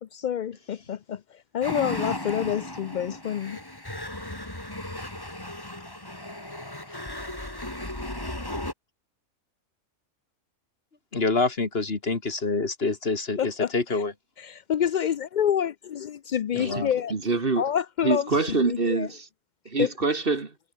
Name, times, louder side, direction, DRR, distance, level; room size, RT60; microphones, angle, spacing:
voice 1, 0.0-3.6 13.4-14.0 14.4-17.1 17.6-19.1 19.8-19.9, left 9 dB, 75° left, 0.4 m, -28 dB
sound 1, 1.6-8.7, left 1 dB, 15° left, 3.0 m, -35 dB
voice 2, 11.1-14.1 16.5-16.9, left 3 dB, 45° left, 2.4 m, -26 dB
voice 3, 17.1-17.6 18.0-19.3 19.7-20.5, right 3 dB, 40° right, 2.0 m, -25 dB
omnidirectional pair, 1.4 m